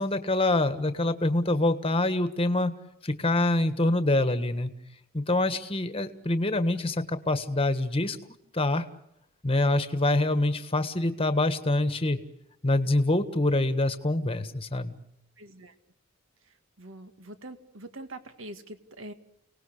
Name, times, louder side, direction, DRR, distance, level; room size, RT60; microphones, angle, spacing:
voice 1, 0.0-2.7 3.0-4.7 5.1-8.2 8.5-8.8 9.4-12.2 12.6-15.0, left 2 dB, 25° left, 10 dB, 1.5 m, -25 dB
voice 2, 15.4-15.7 16.4-19.1, right 1 dB, 60° right, 9 dB, 2.0 m, -44 dB
30.0 x 19.0 x 6.7 m, 0.79 s
head